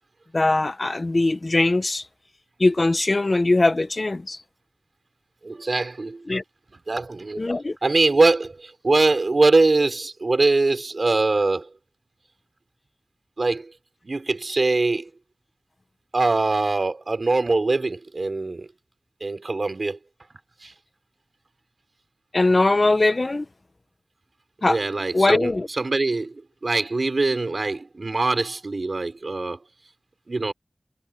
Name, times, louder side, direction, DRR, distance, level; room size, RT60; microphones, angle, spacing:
voice 1, 0.3-2.0 2.6-4.4 6.3-6.4 7.4-7.8 22.3-23.4 24.6-24.8 25.1-25.7, left 2 dB, 55° left, 1.4 m, -21 dB
voice 2, 5.4-6.2 6.9-7.4 7.8-11.7 13.4-13.7 14.0-15.1 16.1-18.7 19.2-20.0 20.6-20.7 24.7-25.5 25.8-29.6 30.3-30.5, right 3 dB, 70° right, 4.9 m, -22 dB
wide cardioid pair, 40°, 0 cm